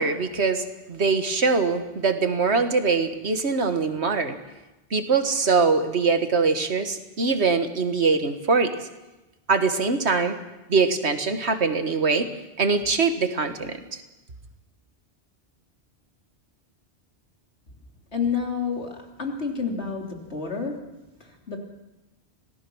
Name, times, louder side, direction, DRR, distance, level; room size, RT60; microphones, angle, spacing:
voice 1, 0.0-4.4 4.9-8.9 9.5-10.4 10.7-12.3 12.6-14.0, right 4 dB, 80° right, 8 dB, 1.9 m, -23 dB
voice 2, 18.1-20.8 21.2-21.6, left 5 dB, 80° left, 2 dB, 3.4 m, -29 dB
25.5 x 18.0 x 6.3 m, 1.0 s
omnidirectional pair, 1.1 m